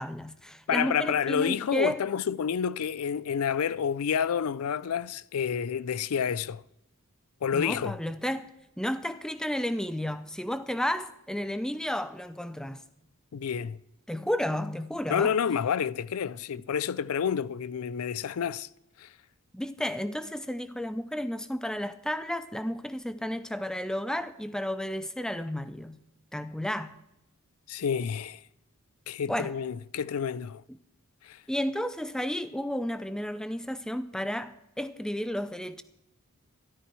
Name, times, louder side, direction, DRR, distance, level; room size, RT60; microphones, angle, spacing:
voice 1, 0.0-2.0 7.5-8.5 8.8-12.8 14.1-15.3 19.5-26.0 26.3-27.0 29.2-29.5 30.7-30.8 31.5-35.8, equal, 5° left, 0.5 m, -32 dB
voice 2, 0.7-6.6 7.4-8.0 13.3-13.8 15.1-18.7 19.0-19.1 27.7-28.4 29.1-30.6 31.2-31.4, left 7 dB, 85° left, 0.4 m, -29 dB
13.5 x 12.5 x 4.6 m
head